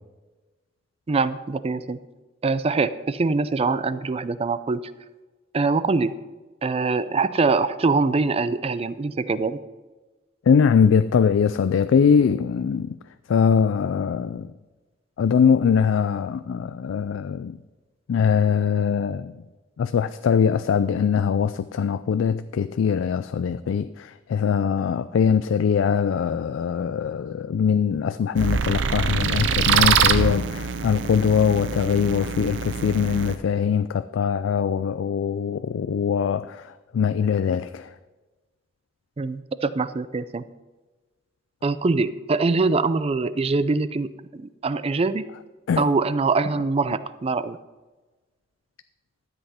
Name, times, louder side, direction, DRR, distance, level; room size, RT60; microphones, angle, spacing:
voice 1, 1.1-2.0 2.4-4.9 5.5-6.1 6.6-9.6 39.2-40.4 41.6-45.2 45.8-47.6, right 3 dB, 30° right, 0.4 m, -23 dB
voice 2, 10.5-13.0 13.3-14.5 15.2-17.6 18.1-19.4 19.8-37.9 45.7-45.8, left 7 dB, 85° left, 0.3 m, -22 dB
sound 1, 28.3-33.4, right 6 dB, 70° right, 0.6 m, -24 dB
12.5 x 8.0 x 4.2 m
head